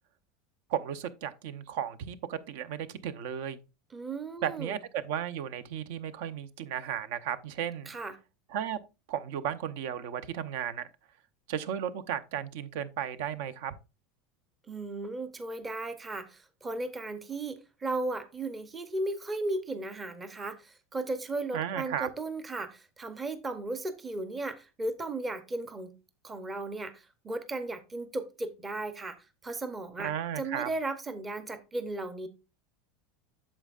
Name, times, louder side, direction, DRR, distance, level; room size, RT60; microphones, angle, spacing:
voice 1, 0.7-3.6 4.4-7.9 8.5-8.8 9.1-10.9 11.5-13.8 21.5-22.1 30.0-30.7, right 9 dB, 65° right, 0.7 m, -34 dB
voice 2, 3.9-4.8 7.9-8.1 14.7-25.9 26.2-32.3, right 2 dB, 10° right, 0.6 m, -36 dB
8.7 x 7.4 x 2.4 m
supercardioid pair, 170°, 0 cm